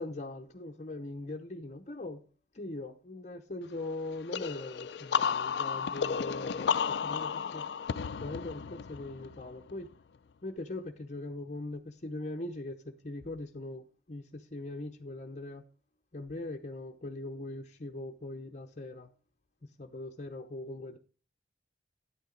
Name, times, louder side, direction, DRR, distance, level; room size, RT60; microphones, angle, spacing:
voice 1, 0.0-2.2 2.5-6.7 7.0-7.6 8.2-9.9 10.4-15.6 16.1-19.1 19.8-21.0, left 2 dB, 40° left, 0.7 m, -41 dB
sound 1, 4.3-9.9, left 6 dB, 70° left, 0.4 m, -33 dB
9.7 x 8.7 x 3.8 m
head